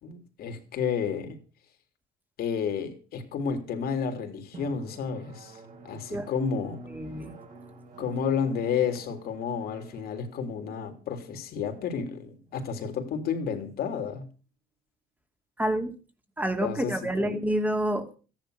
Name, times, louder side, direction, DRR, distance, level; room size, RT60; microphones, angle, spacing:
voice 1, 0.0-1.4 2.4-6.8 8.0-14.3 16.6-17.4, left 6 dB, 65° left, 3.5 m, -31 dB
Drum, 4.5-13.8, right 4 dB, 50° right, 4.7 m, -50 dB
voice 2, 6.9-7.3 15.6-16.0 16.4-18.2, right 1 dB, 10° right, 2.5 m, -28 dB
14.0 x 10.5 x 6.6 m
cardioid pair, 110°, 17 cm